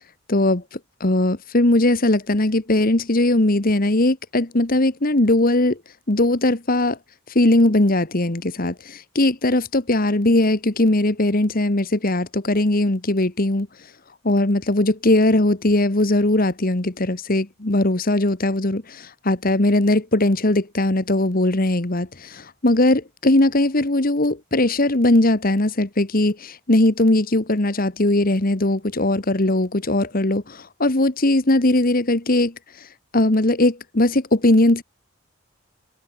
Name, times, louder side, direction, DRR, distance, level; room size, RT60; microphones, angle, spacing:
voice 1, 0.3-5.8 6.1-7.0 7.3-13.9 14.2-34.8, left 1 dB, 40° left, 1.5 m, -19 dB
head